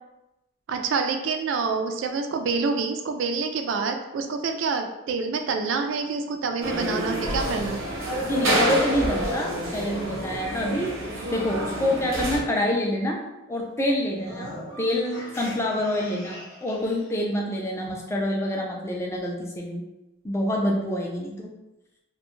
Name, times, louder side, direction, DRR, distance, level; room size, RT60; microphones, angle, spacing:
voice 1, 0.7-7.8, right 4 dB, 65° right, 6 dB, 0.3 m, -27 dB
sound 1, 6.6-12.4, right 1 dB, 85° right, 0.7 m, -27 dB
voice 2, 8.2-10.9 11.3-13.2 13.5-19.8 20.2-21.5, left 1 dB, 15° left, -1 dB, 0.3 m, -27 dB
sound 2, 14.1-17.1, equal, 50° left, 0.8 m, -41 dB
2.4 x 2.2 x 3.0 m, 0.98 s
head